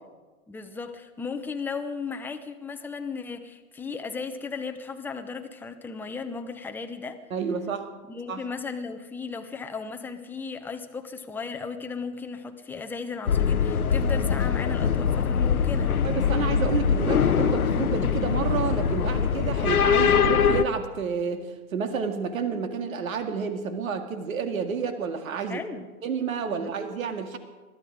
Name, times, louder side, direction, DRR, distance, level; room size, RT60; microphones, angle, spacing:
voice 1, 0.5-7.2 8.1-15.9 25.5-25.9 26.6-26.7, left 5 dB, 5° left, 6 dB, 0.8 m, -35 dB
voice 2, 7.3-7.9 8.3-8.4 16.0-25.6 26.0-27.4, right 6 dB, 70° right, 7 dB, 2.1 m, -30 dB
sound 1, 13.3-20.6, left 7 dB, 90° left, 1.0 m, -23 dB
21.5 x 13.5 x 4.9 m, 1.3 s
hypercardioid pair, 125°, 43 cm